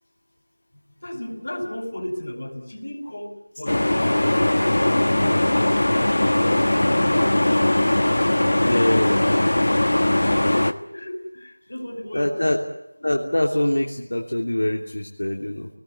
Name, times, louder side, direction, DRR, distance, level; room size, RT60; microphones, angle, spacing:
voice 1, 1.0-7.8 10.2-12.6, left 1 dB, 55° left, 4 dB, 5.6 m, -33 dB
sound 1, 3.7-10.7, left 1 dB, 70° left, 1.4 m, -20 dB
voice 2, 8.6-9.4 12.1-12.6 13.0-15.7, left 1 dB, 90° left, 0 dB, 3.0 m, -24 dB
26.5 x 20.0 x 8.3 m, 0.81 s
figure-of-eight pair, 175°, 0 cm